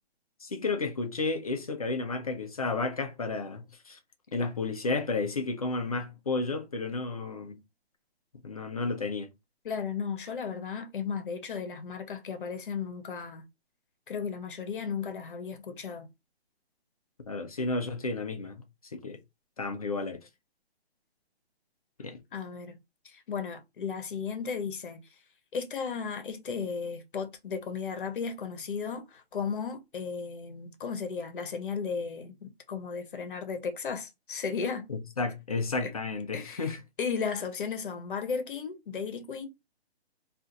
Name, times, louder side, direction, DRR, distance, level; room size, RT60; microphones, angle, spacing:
voice 1, 0.4-4.0 4.3-7.6 8.4-9.3 17.3-19.2 19.6-20.3 22.0-22.2 34.9-36.8, left 3 dB, 35° left, 0.4 m, -32 dB
voice 2, 9.6-13.4 14.1-16.1 22.3-22.8 23.0-25.0 25.5-34.9 35.8-35.9 36.3-39.5, left 6 dB, 50° left, 0.8 m, -35 dB
2.4 x 2.3 x 3.9 m
hypercardioid pair, 165°, 32 cm